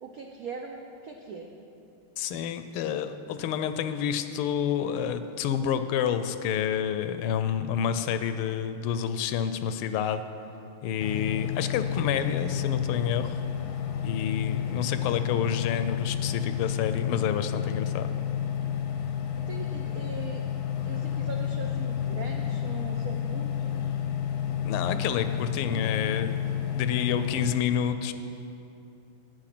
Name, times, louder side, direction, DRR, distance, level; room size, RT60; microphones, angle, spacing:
voice 1, 0.0-1.5 19.4-20.4 20.8-24.0, right 4 dB, 90° right, 2 dB, 0.7 m, -41 dB
voice 2, 2.2-10.3 10.8-13.4 14.0-18.1 24.6-26.5 26.8-28.1, left 8 dB, 80° left, 10 dB, 1.5 m, -29 dB
sound 1, 11.0-27.6, left 9 dB, 65° left, 1.1 m, -30 dB
10.0 x 8.9 x 6.0 m, 2.7 s
omnidirectional pair, 2.4 m